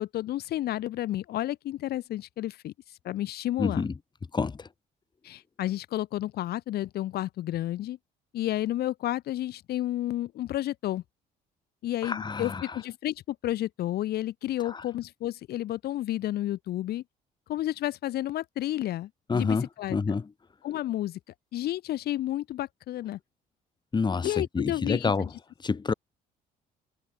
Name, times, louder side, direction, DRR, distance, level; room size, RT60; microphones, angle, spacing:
voice 1, 0.0-3.8 5.2-8.0 8.3-11.0 11.8-17.0 17.5-20.0 20.6-21.2 21.5-23.2 24.2-25.3, left 14 dB, 70° left, 2.6 m, -31 dB
voice 2, 3.6-3.9 4.3-4.7 12.0-12.7 14.7-14.8 19.3-20.3 23.9-25.3 25.6-25.9, left 4 dB, 25° left, 4.4 m, -28 dB
cardioid pair, 110°, 17 cm